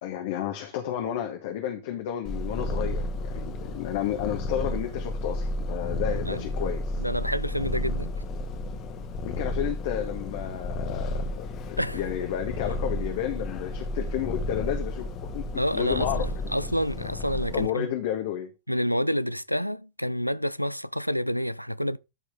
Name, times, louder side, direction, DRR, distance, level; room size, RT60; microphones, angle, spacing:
voice 1, 0.0-7.0 9.2-15.1 15.3-16.5 17.5-18.5, left 11 dB, 50° left, 1.5 m, -32 dB
Purr, 2.2-17.7, left 1 dB, 35° left, 1.7 m, -32 dB
voice 2, 7.0-8.1 11.8-12.0 15.5-17.9 18.7-22.0, equal, 90° left, 0.4 m, -28 dB
14.0 x 4.8 x 3.5 m
figure-of-eight pair, 90°, 0 cm